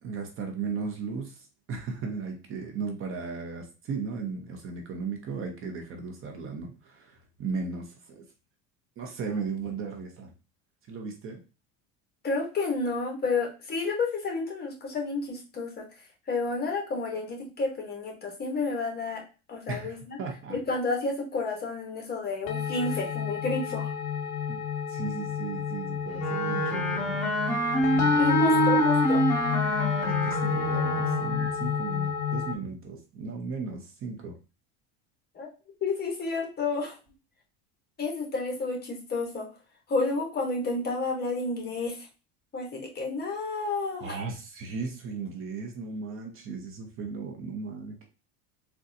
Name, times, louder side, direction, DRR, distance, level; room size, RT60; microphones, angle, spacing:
voice 1, 0.0-8.2 9.0-10.3 10.9-11.4 19.7-20.6 24.5-24.6 24.9-27.3 27.9-28.7 29.9-34.3 44.0-48.1, right 4 dB, 40° right, 3 dB, 0.7 m, -36 dB
voice 2, 12.2-15.8 16.3-19.2 19.5-20.2 20.5-23.9 28.2-29.2 35.3-35.5 35.8-37.0 38.0-39.5 39.9-42.1 42.5-44.1, left 3 dB, 30° left, 1 dB, 1.0 m, -30 dB
sound 1, 22.5-32.6, left 7 dB, 50° left, 0.5 m, -30 dB
Wind instrument woodwind instrument, 26.2-31.5, equal, ahead, 1.7 m, -26 dB
3.9 x 2.3 x 2.6 m, 0.33 s
supercardioid pair, 125°, 35 cm